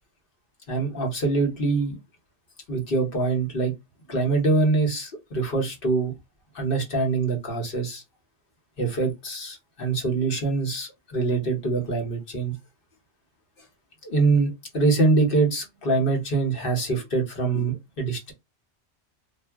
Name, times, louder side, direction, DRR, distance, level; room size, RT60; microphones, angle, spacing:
voice 1, 0.7-2.0 2.7-3.7 4.1-6.1 6.5-8.0 8.8-12.5 14.0-14.5 14.7-18.3, right 3 dB, 60° left, 1.1 m, -24 dB
2.4 x 2.0 x 3.4 m
omnidirectional pair, 1.1 m